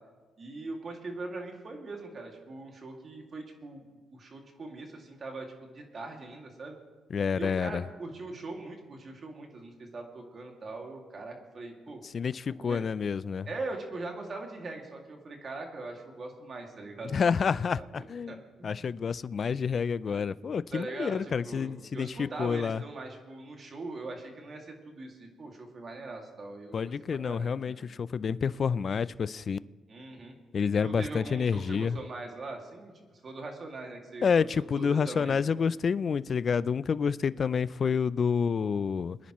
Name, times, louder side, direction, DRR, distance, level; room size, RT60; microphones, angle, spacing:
voice 1, 0.4-3.9 4.1-6.8 7.3-12.0 12.6-12.9 13.5-17.8 18.3-18.8 20.7-27.8 29.9-30.4 30.8-34.5 34.7-35.5, right 2 dB, 45° right, 2.3 m, -41 dB
voice 2, 7.1-7.8 12.1-13.5 17.1-22.8 26.7-29.6 30.5-32.0 34.2-39.2, left 6 dB, 45° left, 0.4 m, -29 dB
23.5 x 10.0 x 3.1 m
cardioid pair, 90°, 0 cm